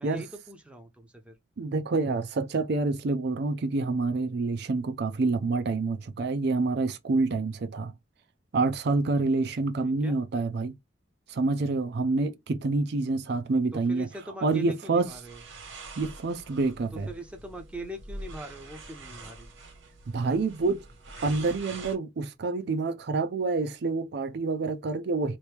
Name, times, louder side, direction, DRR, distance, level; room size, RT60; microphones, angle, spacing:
voice 1, 0.0-1.4 9.8-10.2 13.7-15.4 16.9-19.5, right 1 dB, 5° right, 0.7 m, -42 dB
voice 2, 1.6-7.9 8.5-10.8 11.3-14.1 14.4-15.1 16.0-17.1 20.1-20.8 21.2-25.4, right 3 dB, 60° right, 0.4 m, -27 dB
sound 1, 15.0-22.0, right 2 dB, 90° right, 1.4 m, -45 dB
3.0 x 2.6 x 3.3 m
head